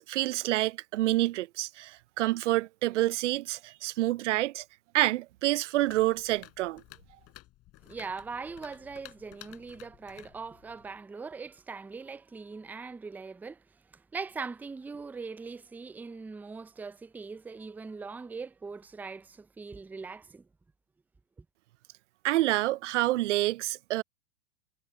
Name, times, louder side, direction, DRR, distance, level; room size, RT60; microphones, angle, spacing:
voice 1, 0.0-4.6 4.9-6.8 22.2-24.0, right 16 dB, 75° right, 0.5 m, -28 dB
sound 1, 5.8-11.0, left 16 dB, 40° left, 5.8 m, -54 dB
voice 2, 7.8-13.6 13.9-20.5, right 4 dB, 5° right, 0.5 m, -41 dB
hypercardioid pair, 110°, 36 cm